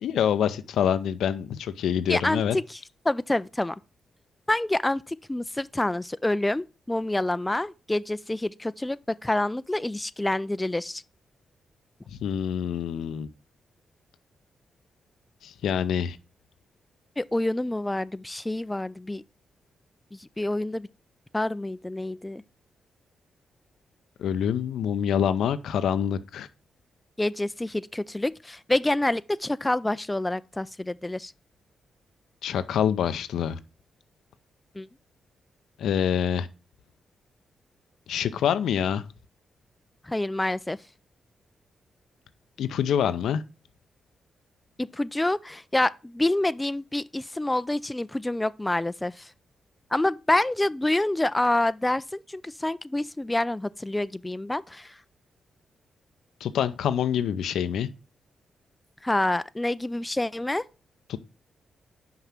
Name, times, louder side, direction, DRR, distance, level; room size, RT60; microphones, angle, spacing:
voice 1, 0.0-2.6 12.1-13.3 15.4-16.2 24.2-26.5 32.4-33.6 35.8-36.5 38.1-39.0 42.6-43.4 56.4-57.9 61.1-61.2, left 8 dB, 75° left, 0.5 m, -26 dB
voice 2, 2.1-2.8 3.0-3.8 4.5-11.0 17.2-19.2 20.1-20.9 21.3-22.4 27.2-31.3 34.8-34.9 40.0-40.8 44.8-49.3 49.9-55.0 59.0-60.6, left 1 dB, 15° left, 0.4 m, -27 dB
5.8 x 4.8 x 5.7 m
hypercardioid pair, 40°, 0 cm